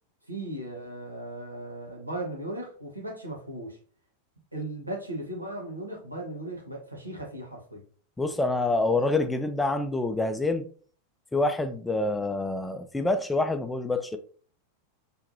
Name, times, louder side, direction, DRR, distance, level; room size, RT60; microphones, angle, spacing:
voice 1, 0.3-3.8 4.5-7.8, right 1 dB, 85° right, 1.3 m, -37 dB
voice 2, 8.2-10.6 11.3-14.2, left 2 dB, 10° left, 0.4 m, -26 dB
4.6 x 3.5 x 2.8 m
figure-of-eight pair, 90°, 0 cm